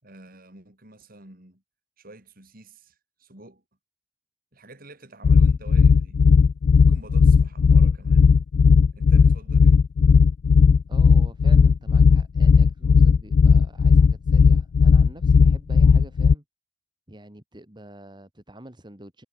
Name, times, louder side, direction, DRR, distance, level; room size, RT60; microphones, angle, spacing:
voice 1, 0.0-1.6 2.0-3.6 4.5-6.2 6.8-8.4 8.9-9.8, right 2 dB, 50° right, 4.5 m, -48 dB
sound 1, 5.2-16.3, left 5 dB, 60° left, 0.3 m, -15 dB
voice 2, 10.9-16.4 17.1-19.2, right 1 dB, 25° right, 2.3 m, -46 dB
head